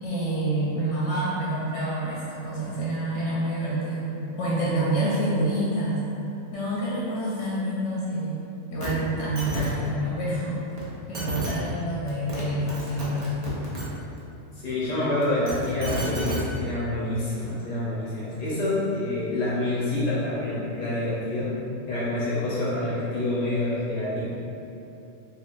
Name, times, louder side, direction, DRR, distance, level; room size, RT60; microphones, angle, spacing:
voice 1, 0.0-4.1 4.4-6.0 6.5-8.4 8.7-10.6 11.1-13.4, right 1 dB, 70° left, -7 dB, 0.8 m, -27 dB
sound 1, 8.8-8.9 9.2-9.7 10.8-10.9 11.1-11.5 12.1-12.4 12.7-13.8 15.2-16.4 17.4-17.5, right 1 dB, 50° right, 0.4 m, -31 dB
voice 2, 14.5-21.5 21.9-24.2, left 1 dB, 45° left, -9 dB, 0.6 m, -27 dB
3.3 x 2.4 x 2.5 m, 2.9 s
omnidirectional pair, 1.4 m